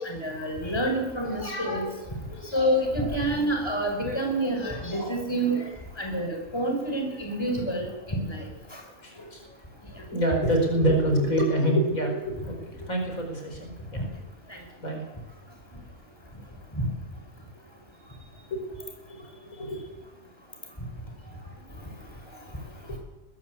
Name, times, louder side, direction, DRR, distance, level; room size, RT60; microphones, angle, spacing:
voice 1, 0.0-1.8 2.5-5.6 6.0-8.4 14.0-14.1 16.7-16.9, right 1 dB, 20° left, 2 dB, 5.4 m, -28 dB
voice 2, 1.2-1.9 2.3-2.7 4.0-4.2 4.6-5.1 5.6-5.7 9.0-9.6 10.1-14.0 14.6-15.0 18.5-18.6 19.1-19.8 21.2-21.6, right 1 dB, 85° left, 2 dB, 5.3 m, -28 dB
21.0 x 15.0 x 8.3 m, 0.97 s
omnidirectional pair, 1.4 m